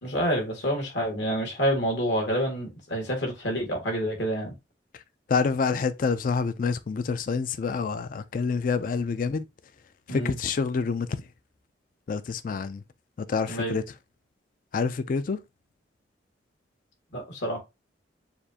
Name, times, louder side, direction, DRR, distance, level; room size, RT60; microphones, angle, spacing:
voice 1, 0.0-4.5 10.1-10.4 13.5-13.8 17.1-17.6, equal, 70° left, 1.9 m, -28 dB
voice 2, 5.3-9.4 10.1-11.2 12.1-12.8 13.3-13.8 14.7-15.4, left 5 dB, 45° left, 0.3 m, -27 dB
6.7 x 2.5 x 2.7 m
head